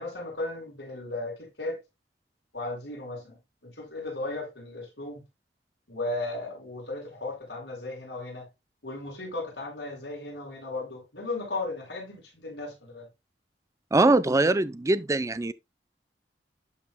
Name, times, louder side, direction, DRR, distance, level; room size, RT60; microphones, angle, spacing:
voice 1, 0.0-1.8 2.5-3.4 3.6-5.2 5.9-8.5 8.8-13.1, left 2 dB, 75° left, 5.3 m, -35 dB
voice 2, 13.9-15.5, right 2 dB, 20° right, 0.4 m, -22 dB
12.0 x 5.7 x 2.2 m
head